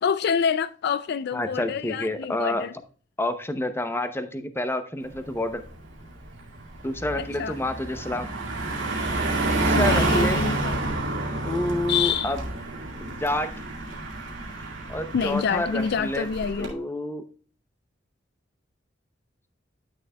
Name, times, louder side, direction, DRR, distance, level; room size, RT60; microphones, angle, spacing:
voice 1, 0.0-2.7 7.2-7.6 9.7-10.8 11.9-12.3 15.1-16.7, left 6 dB, 60° left, 0.4 m, -27 dB
voice 2, 1.3-2.6 3.2-5.6 6.8-8.3 9.5-10.4 11.4-12.4 13.0-13.5 14.9-16.3 16.6-17.2, left 1 dB, 15° left, 0.7 m, -28 dB
Car passing by, 5.1-5.4 5.7-16.7, right 2 dB, 80° right, 2.3 m, -28 dB
11.0 x 6.4 x 2.3 m
head